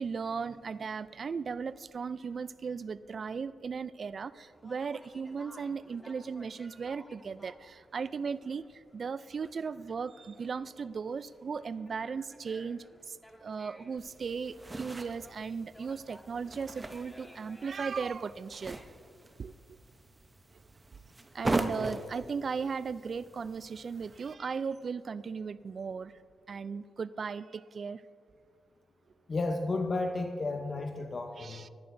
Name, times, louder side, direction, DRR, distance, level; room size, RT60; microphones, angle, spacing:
voice 1, 0.0-18.8 19.4-19.5 21.3-26.1 26.5-28.0 31.4-31.7, right 5 dB, 55° right, 16 dB, 0.3 m, -37 dB
Conversation, 4.5-19.5, equal, 5° left, 1.5 m, -58 dB
sound 1, 14.0-24.3, right 2 dB, 25° right, 0.8 m, -40 dB
voice 2, 29.3-31.6, left 2 dB, 45° left, 5 dB, 0.8 m, -32 dB
20.0 x 11.0 x 2.6 m, 2.3 s
cardioid pair, 65°, 0 cm